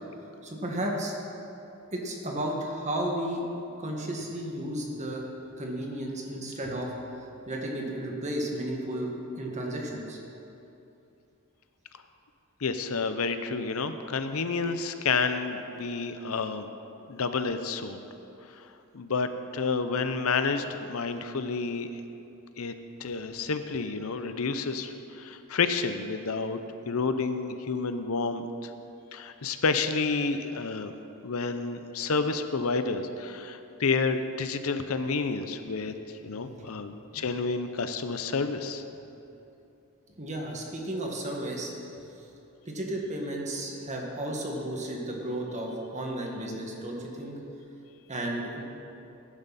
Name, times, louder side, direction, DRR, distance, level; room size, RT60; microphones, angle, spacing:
voice 1, 0.4-1.1 1.9-3.4 3.8-5.2 5.6-6.9 7.5-10.2 36.3-36.8 37.1-37.2 40.2-41.7 42.7-47.3 48.1-48.6, right 1 dB, 35° right, 0 dB, 1.8 m, -33 dB
voice 2, 12.6-16.7 17.1-18.0 18.5-18.7 18.9-22.0 22.6-22.7 23.0-26.6 26.9-28.7 29.1-30.9 31.2-35.9 36.2-38.8, left 4 dB, 70° left, 9 dB, 0.7 m, -30 dB
17.0 x 10.5 x 4.2 m, 2.8 s
head